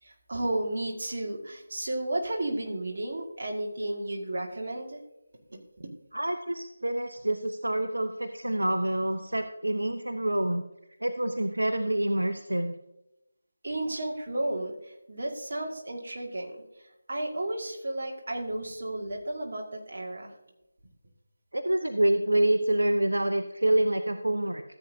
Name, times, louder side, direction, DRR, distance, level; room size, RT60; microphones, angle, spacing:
voice 1, 0.0-5.0 5.5-5.9 13.6-20.3, right 1 dB, 55° right, 1 dB, 1.8 m, -33 dB
voice 2, 6.1-10.6 11.0-12.7 21.5-24.6, right 1 dB, 85° right, 9 dB, 0.6 m, -27 dB
14.0 x 8.0 x 2.7 m, 0.90 s
figure-of-eight pair, 160°, 0 cm